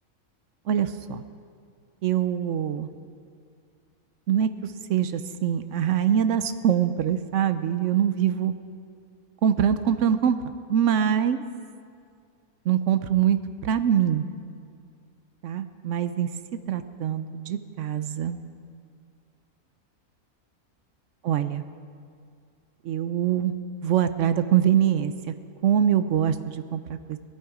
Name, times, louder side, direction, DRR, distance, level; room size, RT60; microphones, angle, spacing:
voice 1, 0.7-1.2 2.0-2.9 4.3-4.5 4.9-8.5 9.4-10.4 10.7-11.4 12.7-14.2 15.4-16.3 16.7-18.4 21.2-21.6 22.9-23.5 23.8-25.1 25.6-26.8 27.1-27.2, right 9 dB, 65° right, 11 dB, 0.8 m, -23 dB
20.0 x 11.0 x 4.8 m, 2.3 s
omnidirectional pair, 1.6 m